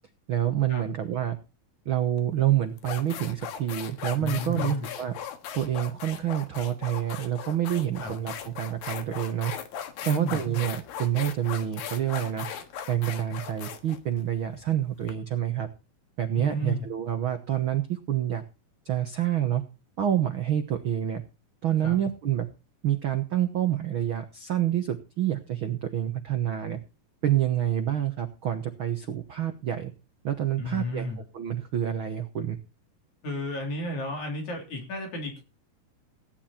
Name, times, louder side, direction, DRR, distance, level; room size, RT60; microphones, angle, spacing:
voice 1, 0.3-1.4 1.8-5.2 5.5-9.5 10.0-12.5 12.9-15.7 16.2-18.4 18.8-19.6 20.0-21.2 21.6-22.5 22.8-26.8 27.2-29.9 30.2-31.1 31.3-32.6, right 11 dB, 75° right, 7 dB, 1.1 m, -27 dB
sound 1, 2.2-2.3 2.8-15.1, left 8 dB, 80° left, 3.2 m, -38 dB
voice 2, 4.2-4.9 8.0-8.1 10.0-10.4 16.3-16.9 21.8-22.0 30.6-31.2 33.2-35.4, left 1 dB, 55° left, 2 dB, 4.7 m, -32 dB
16.5 x 10.5 x 4.4 m, 0.30 s
omnidirectional pair, 4.1 m